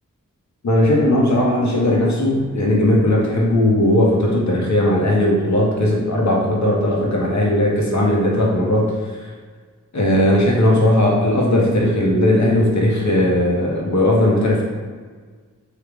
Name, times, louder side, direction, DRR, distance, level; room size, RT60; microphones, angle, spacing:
voice 1, 0.6-8.9 9.9-14.6, left 1 dB, 60° left, -2 dB, 0.9 m, -17 dB
3.3 x 2.3 x 3.4 m, 1.5 s
cardioid pair, 45°, 33 cm